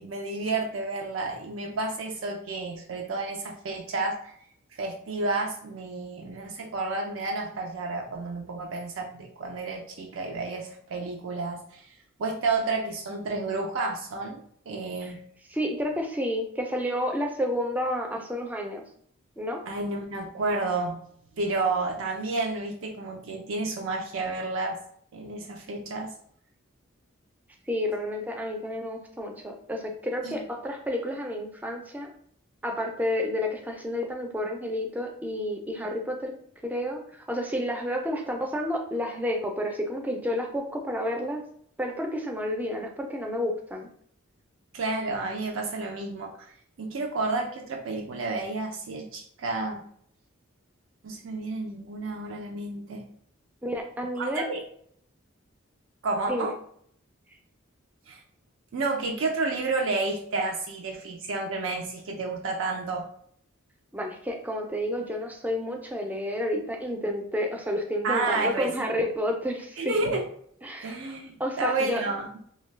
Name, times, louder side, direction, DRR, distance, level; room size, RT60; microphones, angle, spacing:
voice 1, 0.0-4.3 4.8-11.9 12.2-15.2 19.7-21.1 21.4-24.8 25.1-26.1 30.2-30.3 44.7-49.8 51.0-53.0 54.2-54.6 56.0-56.5 58.1-58.2 58.7-63.1 68.0-68.7 69.8-70.3 70.8-72.3, right 3 dB, 70° right, 1 dB, 0.4 m, -31 dB
voice 2, 15.5-18.8 19.4-19.6 27.7-32.1 32.6-36.3 36.6-41.4 41.8-43.9 53.6-54.4 56.3-56.5 63.9-69.9 70.6-71.0 71.4-72.0, equal, 10° right, 2 dB, 0.4 m, -30 dB
2.6 x 2.2 x 3.1 m, 0.64 s
head